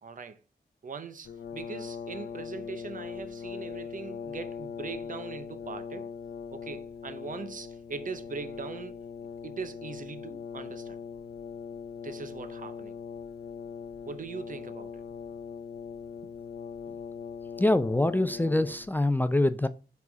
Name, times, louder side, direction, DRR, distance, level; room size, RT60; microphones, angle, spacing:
voice 1, 0.0-0.4 0.8-6.1 6.5-9.0 9.4-11.0 12.0-13.0 14.0-15.0 16.2-16.3, right 5 dB, 55° right, 0.6 m, -41 dB
Brass instrument, 1.2-19.0, left 6 dB, 80° left, 0.4 m, -40 dB
voice 2, 17.6-19.7, left 1 dB, 10° left, 0.3 m, -24 dB
4.7 x 4.1 x 4.9 m
wide cardioid pair, 100°, 17 cm